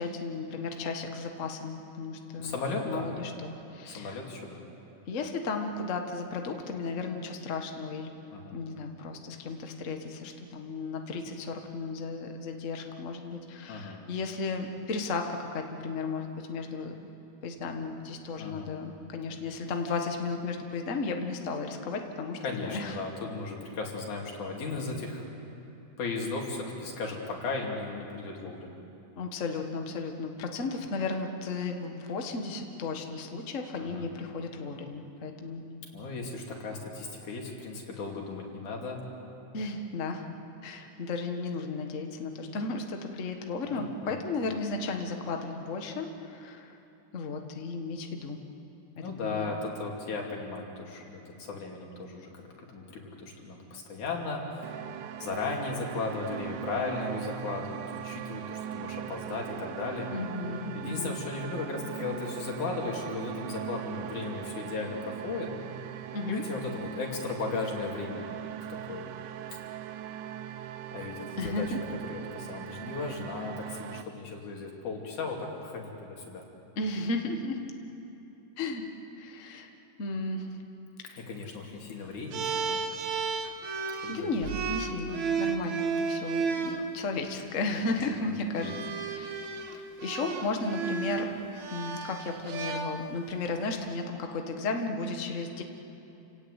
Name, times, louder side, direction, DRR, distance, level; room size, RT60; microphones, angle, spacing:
voice 1, 0.0-2.5 2.9-4.2 5.1-8.1 8.5-17.1 17.4-22.9 29.2-35.6 39.5-40.3 40.6-46.8 47.1-48.4 49.2-49.5 60.1-61.2 66.1-66.4 71.4-71.8 76.7-77.6 78.6-78.8 79.2-79.7 80.0-80.5 81.0-81.2 83.9-88.7 89.0-91.3 91.7-95.6, left 3 dB, 35° left, 4 dB, 1.4 m, -34 dB
voice 2, 2.4-3.1 3.9-4.6 8.3-8.6 13.7-14.0 18.4-18.7 22.4-25.3 26.0-28.8 33.8-34.1 35.9-39.0 43.7-44.2 49.0-52.3 52.6-54.7 55.2-60.1 60.7-65.5 66.3-68.3 68.7-69.1 69.5-69.6 70.9-76.5 81.2-82.8 84.0-84.4 88.2-88.8, left 3 dB, 90° left, 0 dB, 4.3 m, -36 dB
sound 1, 54.6-74.0, right 11 dB, 90° right, 2.3 m, -40 dB
sound 2, 82.3-86.8 87.8-88.1 88.6-93.4, right 6 dB, 70° right, 2.7 m, -33 dB
29.0 x 17.5 x 8.2 m, 2.9 s
omnidirectional pair, 3.4 m